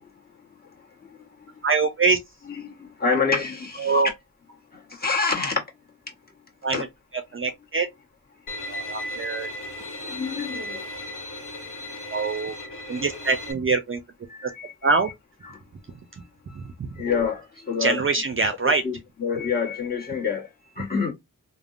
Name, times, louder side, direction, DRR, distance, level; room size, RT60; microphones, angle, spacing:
voice 1, 1.1-1.5 2.5-4.0 4.7-5.6 6.7-6.8 10.1-10.9 14.3-14.7 15.5-15.6 16.9-18.0 18.6-20.5 20.8-21.1, left 5 dB, 25° left, 1.1 m, -27 dB
voice 2, 1.6-2.2 3.8-4.1 6.6-6.9 7.1-7.9 8.7-9.5 10.0-10.1 12.1-12.6 12.9-14.0 14.4-14.5 14.8-15.1 16.1-16.2 16.5-17.0 17.8-18.8, right 4 dB, 40° right, 0.4 m, -24 dB
Bowed string instrument, 8.5-13.5, left 1 dB, 65° left, 0.9 m, -35 dB
3.4 x 2.0 x 2.4 m
wide cardioid pair, 70°, 35 cm